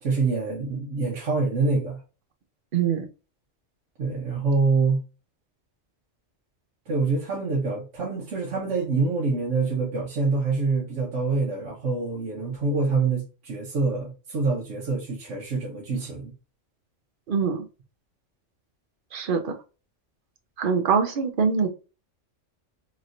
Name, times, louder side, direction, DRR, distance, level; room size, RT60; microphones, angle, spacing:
voice 1, 0.0-2.0 4.0-5.0 6.9-16.3, right 4 dB, 75° right, 1.1 m, -26 dB
voice 2, 2.7-3.1 17.3-17.7 19.1-19.6 20.6-21.7, right 6 dB, 55° right, 0.7 m, -23 dB
3.1 x 2.9 x 2.5 m
omnidirectional pair, 1.3 m